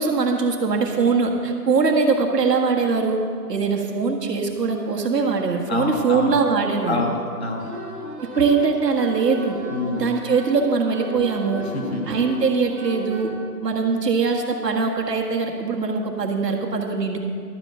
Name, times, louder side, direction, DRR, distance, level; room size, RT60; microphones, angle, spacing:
voice 1, 0.0-3.2 3.5-7.0 8.2-9.6 9.9-11.6 12.1-13.3 13.6-17.2, right 4 dB, 70° right, 1 dB, 1.7 m, -22 dB
voice 2, 5.7-6.4 6.9-7.7 9.7-10.0 11.6-12.0, left 3 dB, 40° left, 0 dB, 1.4 m, -26 dB
Wind instrument woodwind instrument, 7.6-13.2, equal, 5° right, 1.3 m, -36 dB
12.0 x 5.7 x 7.6 m, 2.4 s
hypercardioid pair, 180°, 50 cm